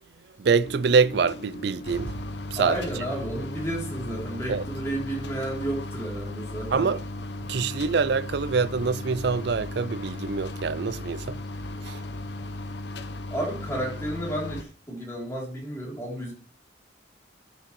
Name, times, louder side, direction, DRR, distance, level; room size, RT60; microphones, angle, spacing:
voice 1, 0.4-2.2 2.5-2.8 4.5-4.6 6.7-7.0 7.5-11.4 11.8-12.0, right 5 dB, 60° right, 0.4 m, -25 dB
sound 1, 0.6-14.6, left 2 dB, 60° left, 0.7 m, -36 dB
voice 2, 2.6-6.9 13.3-16.3, right 1 dB, 15° left, 3.5 m, -32 dB
13.5 x 6.0 x 3.2 m
head